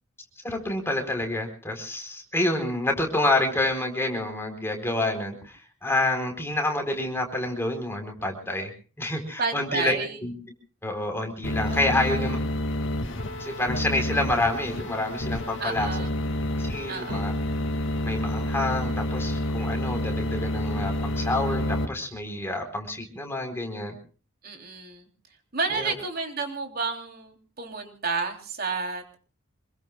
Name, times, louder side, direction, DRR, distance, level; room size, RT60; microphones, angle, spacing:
voice 1, 0.4-8.7 9.0-10.3 10.8-12.4 13.4-15.9 16.6-17.3 18.0-24.0 25.7-25.9, left 2 dB, 10° left, 4 dB, 4.2 m, -28 dB
voice 2, 9.4-10.2 11.7-12.4 15.6-16.1 16.9-17.4 24.4-25.1 25.5-29.2, right 4 dB, 45° right, 3 dB, 3.3 m, -31 dB
sound 1, 11.4-21.8, left 1 dB, 60° left, 2.3 m, -29 dB
27.0 x 22.5 x 2.4 m, 0.38 s
head